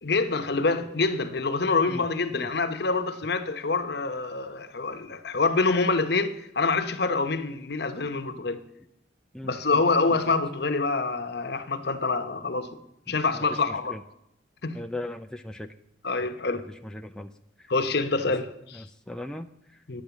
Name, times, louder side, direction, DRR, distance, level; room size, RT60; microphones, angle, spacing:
voice 1, 0.0-8.6 9.4-12.8 13.1-14.0 14.6-14.8 16.0-16.7 17.7-18.8 19.9-20.0, left 3 dB, 60° left, 0.9 m, -26 dB
voice 2, 9.3-9.8 10.1-10.2 13.1-13.6 13.9-14.0 14.7-15.7 16.8-17.3 17.6-17.7 18.7-19.8, left 1 dB, 5° left, 0.4 m, -39 dB
10.5 x 9.2 x 7.0 m
head